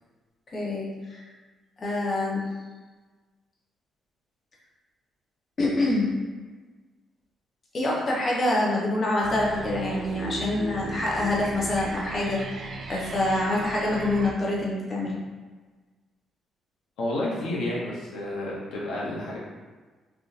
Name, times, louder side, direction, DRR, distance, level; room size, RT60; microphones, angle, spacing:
voice 1, 0.5-1.2 1.8-2.4 5.6-6.1 7.7-12.4 12.9-15.2, left 2 dB, 40° left, -4 dB, 0.8 m, -26 dB
sound 1, 9.2-14.3, right 2 dB, 55° right, 0.4 m, -37 dB
voice 2, 17.0-19.4, left 1 dB, 90° left, -5 dB, 0.7 m, -30 dB
3.6 x 2.6 x 2.5 m, 1.3 s
cardioid pair, 90°, 0 cm